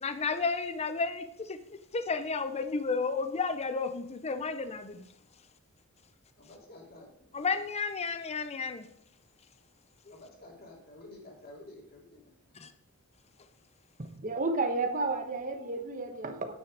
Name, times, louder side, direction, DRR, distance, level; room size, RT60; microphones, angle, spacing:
voice 1, 0.0-5.0 7.3-8.8 12.6-12.7, left 4 dB, 30° left, 11 dB, 0.6 m, -32 dB
voice 2, 6.4-7.4 10.1-12.6, left 1 dB, 45° left, -1 dB, 2.7 m, -51 dB
voice 3, 14.0-16.6, right 3 dB, 40° right, 7 dB, 1.1 m, -32 dB
9.8 x 6.3 x 5.0 m, 0.79 s
head